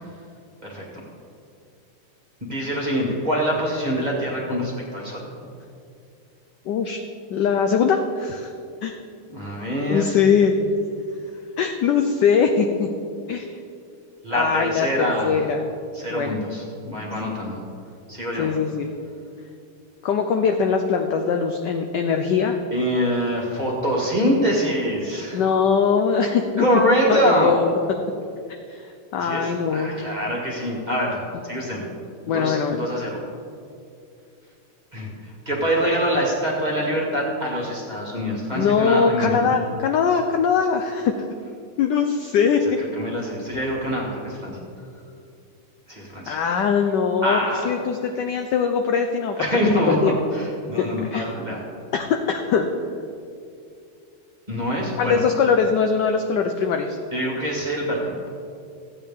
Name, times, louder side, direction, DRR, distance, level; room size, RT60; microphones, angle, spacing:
voice 1, 2.4-5.2 9.3-10.1 14.2-15.4 15.9-17.6 18.1-18.5 22.7-25.4 26.6-27.5 29.2-31.9 32.3-33.2 34.9-39.5 42.6-44.6 45.9-46.4 47.2-47.7 49.4-51.6 54.5-55.2 57.1-58.3, equal, 20° right, -3 dB, 1.6 m, -24 dB
voice 2, 6.7-7.0 7.3-8.5 8.8-9.0 9.9-10.6 11.6-12.9 13.3-13.5 14.3-14.9 15.2-15.7 16.1-16.4 18.4-18.9 20.0-22.6 25.3-26.8 27.1-27.8 28.7-29.9 32.3-32.8 38.5-41.1 41.8-42.8 46.3-49.4 49.9-50.1 50.8-50.9 51.1-51.3 51.9-52.7 55.0-57.0, left 6 dB, 75° left, 5 dB, 1.0 m, -21 dB
15.0 x 8.4 x 3.6 m, 2.5 s
omnidirectional pair, 2.4 m